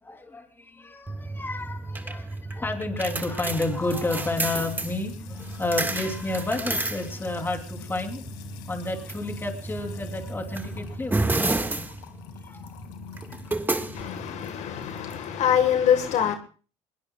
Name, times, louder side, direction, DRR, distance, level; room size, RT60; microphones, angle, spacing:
voice 1, 0.0-8.3 8.7-11.5 12.4-12.7 13.5-13.9, left 2 dB, 15° left, 3.1 m, -31 dB
sound 1, 1.1-15.8, right 2 dB, 15° right, 1.7 m, -32 dB
Music / Water tap faucet / Trickle dribble, 3.4-15.2, left 9 dB, 90° left, 2.1 m, -45 dB
voice 2, 13.9-16.3, left 9 dB, 60° left, 1.5 m, -24 dB
21.5 x 21.0 x 2.3 m
cardioid pair, 105°, 14 cm